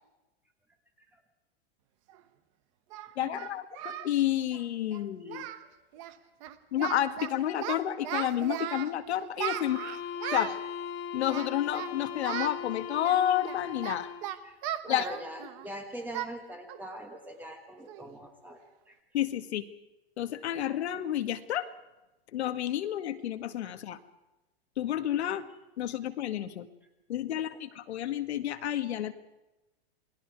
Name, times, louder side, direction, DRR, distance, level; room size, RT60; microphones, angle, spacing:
Singing, 2.1-2.2 2.9-4.1 4.4-4.6 4.9-5.0 5.3-5.7 5.9-6.1 6.4-7.3 7.6-8.9 9.4-10.6 11.3-11.9 12.2-12.6 13.0-15.7 16.1-16.3 16.7-16.9 17.3-17.4 17.9-18.1, right 12 dB, 30° right, 1.0 m, -37 dB
voice 1, 3.2-5.5 6.7-9.8 10.3-10.6 11.1-14.1 14.9-15.1 19.1-19.7 20.2-21.7 22.3-24.0 24.8-25.5 25.8-26.7 27.1-29.1, left 11 dB, 80° left, 8 dB, 2.0 m, -30 dB
sound 1, 9.4-14.4, left 8 dB, 30° left, 2.3 m, -39 dB
voice 2, 14.8-19.0 27.3-27.4, right 1 dB, 5° right, 4 dB, 1.5 m, -43 dB
28.5 x 21.0 x 4.8 m, 1.0 s
supercardioid pair, 175°, 32 cm